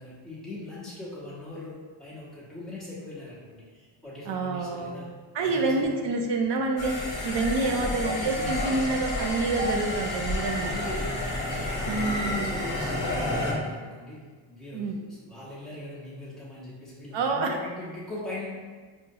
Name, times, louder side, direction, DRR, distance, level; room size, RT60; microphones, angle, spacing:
voice 1, 0.0-5.0 5.4-6.2 7.5-9.0 10.6-18.5, left 2 dB, ahead, -9 dB, 1.0 m, -41 dB
voice 2, 4.3-5.0 5.3-7.0 7.2-10.7 11.8-12.5 14.7-14.9 17.1-17.6, right 3 dB, 65° right, 2 dB, 0.6 m, -27 dB
sound 1, 6.8-13.5, left 1 dB, 45° left, 0.9 m, -30 dB
5.4 x 2.1 x 2.7 m, 1.5 s
wide cardioid pair, 160°, 46 cm